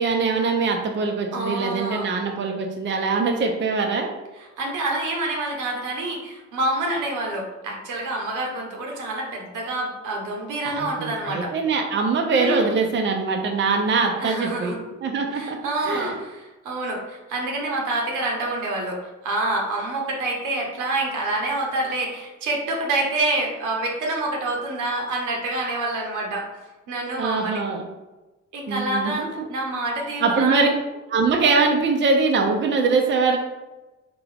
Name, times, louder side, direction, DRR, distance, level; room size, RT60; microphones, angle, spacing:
voice 1, 0.0-4.1 10.6-14.7 15.0-15.6 15.8-16.2 27.2-27.8 28.7-29.3 30.2-30.7 31.1-33.4, right 4 dB, 40° right, 2 dB, 0.6 m, -22 dB
voice 2, 1.3-2.1 4.4-11.5 12.3-12.8 14.2-14.8 15.3-27.6 28.5-30.7, right 2 dB, 85° right, 0 dB, 1.0 m, -27 dB
3.6 x 2.9 x 3.4 m, 1.1 s
cardioid pair, 90°, 30 cm